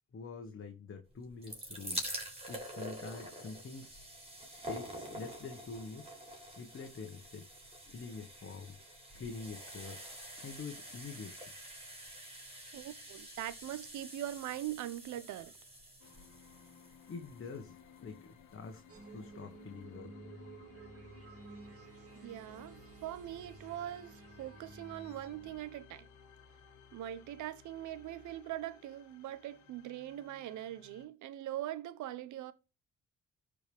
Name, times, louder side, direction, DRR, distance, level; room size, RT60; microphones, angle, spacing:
voice 1, 0.1-4.0 4.7-6.2 6.6-7.5 7.9-8.8 9.1-10.0 10.4-11.5 17.1-18.8 19.1-20.1, left 4 dB, 45° left, 1.6 m, -46 dB
sound 1, 1.2-18.2 19.0-19.1 19.3-19.4, equal, 20° right, 4.7 m, -47 dB
voice 2, 12.7-15.5 22.2-26.1 26.9-32.5, right 12 dB, 85° right, 0.9 m, -42 dB
sound 2, 16.0-31.1, left 7 dB, 85° left, 1.6 m, -59 dB
sound 3, 18.9-25.7, right 3 dB, 50° right, 2.9 m, -53 dB
13.5 x 5.1 x 3.5 m
cardioid pair, 65°, 29 cm